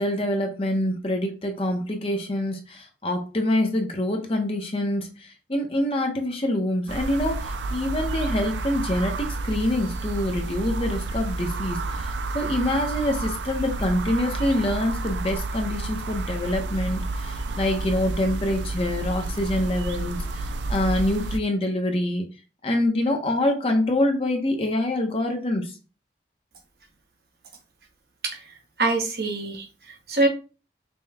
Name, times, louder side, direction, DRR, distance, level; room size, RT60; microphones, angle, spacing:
voice 1, 0.0-22.3 22.6-25.7, left 1 dB, 30° left, 3 dB, 0.7 m, -26 dB
sound 1, 6.9-21.4, right 3 dB, 85° right, 0.4 m, -30 dB
voice 2, 28.2-30.3, right 2 dB, 60° right, 2 dB, 1.1 m, -25 dB
5.3 x 2.2 x 3.4 m, 0.33 s
head